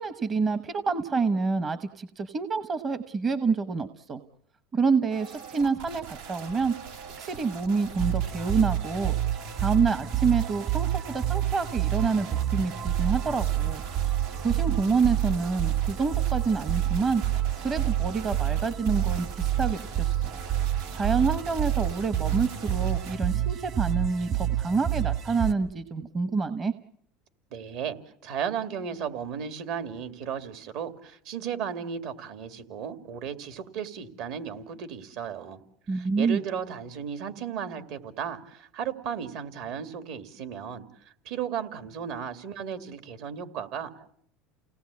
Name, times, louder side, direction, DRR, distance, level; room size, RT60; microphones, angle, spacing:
voice 1, 0.0-4.2 4.7-6.7 7.2-9.1 9.6-13.8 14.4-17.2 17.6-20.1 20.9-26.7 35.9-36.4, right 4 dB, 25° right, 12 dB, 0.9 m, -27 dB
sound 1, 5.1-23.2, right 6 dB, 90° right, 4.3 m, -43 dB
sound 2, 8.0-25.5, right 12 dB, 45° right, 1.9 m, -28 dB
voice 2, 27.5-35.6 35.9-44.1, right 8 dB, 65° right, 9 dB, 2.4 m, -35 dB
29.5 x 18.5 x 8.4 m, 0.69 s
supercardioid pair, 145°, 0 cm